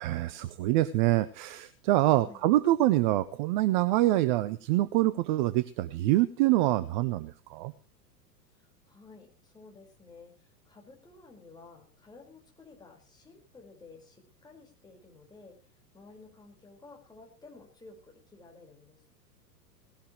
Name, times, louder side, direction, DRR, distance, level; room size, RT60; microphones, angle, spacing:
voice 1, 0.0-7.7, right 16 dB, 30° right, 17 dB, 0.6 m, -25 dB
voice 2, 2.1-2.5 8.8-15.6 15.9-19.1, left 3 dB, 10° left, 0 dB, 5.0 m, -53 dB
18.5 x 17.0 x 3.2 m, 0.34 s
figure-of-eight pair, 100°, 49 cm